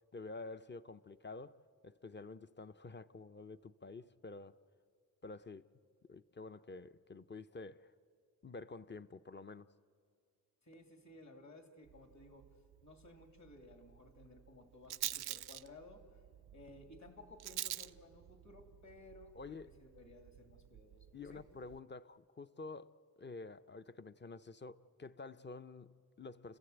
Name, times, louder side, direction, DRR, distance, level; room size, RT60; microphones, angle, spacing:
voice 1, 0.1-4.6 5.2-5.7 6.1-7.9 8.4-9.7 19.4-19.7 21.1-26.6, left 3 dB, 30° left, 0.6 m, -49 dB
voice 2, 10.6-12.5 12.8-16.2 16.5-21.5, left 2 dB, 50° left, 2.7 m, -57 dB
Rattle, 11.9-21.8, right 12 dB, 85° right, 0.5 m, -48 dB
30.0 x 14.5 x 8.0 m
cardioid pair, 70°, 37 cm